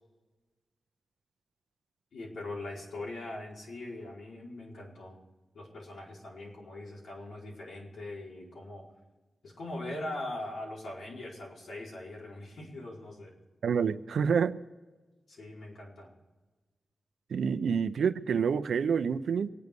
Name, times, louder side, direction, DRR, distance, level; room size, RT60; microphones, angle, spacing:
voice 1, 2.1-5.2 5.5-8.9 9.4-13.3 15.3-16.1 17.7-17.8, left 2 dB, 80° left, 4.7 m, -41 dB
voice 2, 13.6-14.6 17.3-19.5, right 6 dB, 90° right, 0.7 m, -28 dB
24.0 x 9.6 x 5.3 m
wide cardioid pair, 170°, 0 cm